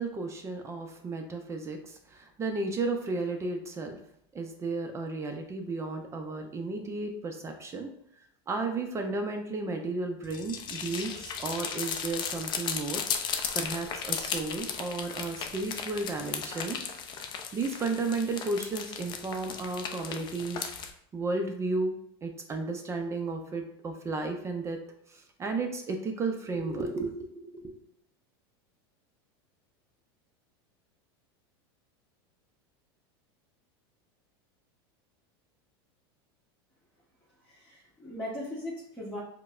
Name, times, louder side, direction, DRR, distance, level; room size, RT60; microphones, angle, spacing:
voice 1, 0.0-4.0 4.3-7.9 8.5-16.8 17.5-20.7 21.1-21.9 22.2-24.8 25.1-27.8, right 3 dB, 20° right, 5 dB, 0.5 m, -33 dB
sound 1, 10.2-20.9, left 7 dB, 35° left, 0.4 m, -36 dB
voice 2, 37.5-39.2, left 1 dB, 5° left, -8 dB, 1.1 m, -38 dB
4.6 x 2.1 x 2.4 m, 0.72 s
supercardioid pair, 120°, 13 cm